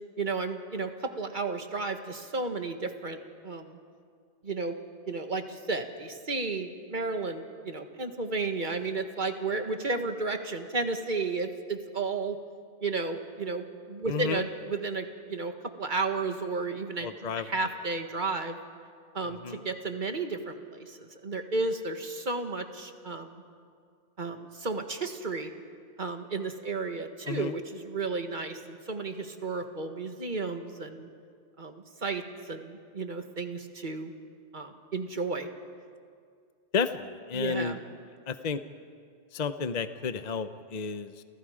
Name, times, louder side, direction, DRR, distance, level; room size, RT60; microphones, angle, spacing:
voice 1, 0.2-3.2 3.4-3.8 4.4-4.8 5.1-12.4 12.8-15.5 15.8-17.1 17.4-18.6 19.1-23.4 24.2-25.5 26.0-31.1 31.6-34.1 34.5-35.5 37.3-37.8, right 3 dB, 45° right, 6 dB, 1.7 m, -33 dB
voice 2, 14.1-14.4 17.0-17.5 19.2-19.6 27.3-27.5 36.7-37.8 38.3-38.6 39.3-41.2, left 5 dB, 40° left, 10 dB, 0.9 m, -32 dB
29.0 x 29.0 x 5.0 m, 2.2 s
omnidirectional pair, 1.2 m